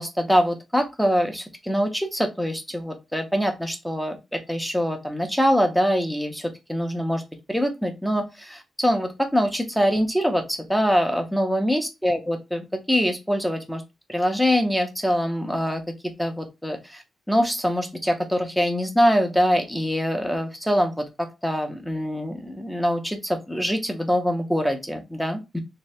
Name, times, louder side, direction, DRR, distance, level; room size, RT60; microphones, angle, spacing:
voice 1, 0.0-7.2 7.5-13.8 14.1-15.8 16.2-25.6, equal, ahead, 5 dB, 0.6 m, -24 dB
3.2 x 2.7 x 3.2 m, 0.24 s
wide cardioid pair, 155°, 0 cm